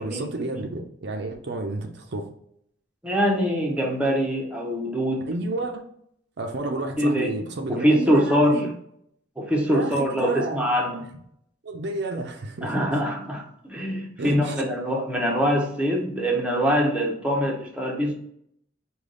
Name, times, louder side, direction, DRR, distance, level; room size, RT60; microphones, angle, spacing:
voice 1, 0.0-2.3 5.3-5.8 6.4-8.7 9.7-10.6 11.6-12.8 14.2-14.7, right 2 dB, 55° right, 4 dB, 0.5 m, -31 dB
voice 2, 3.0-5.3 7.0-7.4 7.7-8.6 9.4-11.1 12.6-18.1, equal, 5° right, -1 dB, 0.7 m, -23 dB
5.0 x 2.3 x 3.7 m, 0.70 s
head